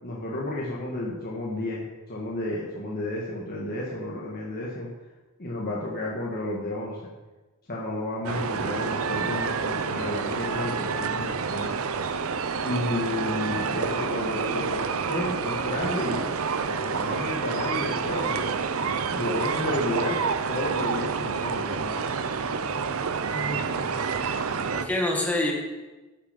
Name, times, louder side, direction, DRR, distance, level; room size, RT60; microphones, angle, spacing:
voice 1, 0.0-4.9 5.4-7.1 7.7-11.8 12.6-16.3 16.6-18.6 19.1-20.2 20.5-22.0, left 1 dB, 45° left, -5 dB, 1.7 m, -31 dB
sound 1, 8.2-24.9, right 5 dB, 70° right, 0.7 m, -28 dB
voice 2, 23.3-24.2 24.7-25.5, left 1 dB, 5° left, -1 dB, 2.0 m, -28 dB
11.0 x 8.9 x 5.3 m, 1.2 s
head